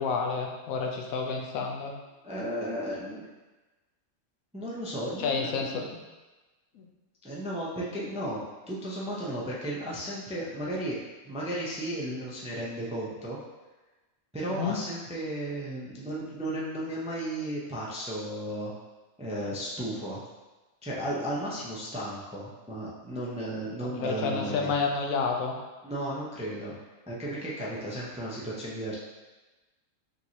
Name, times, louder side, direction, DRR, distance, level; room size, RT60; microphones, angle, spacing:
voice 1, 0.0-1.9 5.2-6.0 6.7-6.9 14.5-14.8 23.8-25.6, left 5 dB, 90° left, 1 dB, 1.1 m, -30 dB
voice 2, 2.2-3.3 4.5-5.8 7.2-11.0 11.2-13.4 14.3-18.7 19.2-20.2 20.8-24.7 25.8-26.8 27.1-28.9, right 1 dB, 10° right, -6 dB, 0.3 m, -34 dB
5.2 x 3.0 x 2.8 m, 1.2 s
omnidirectional pair, 1.4 m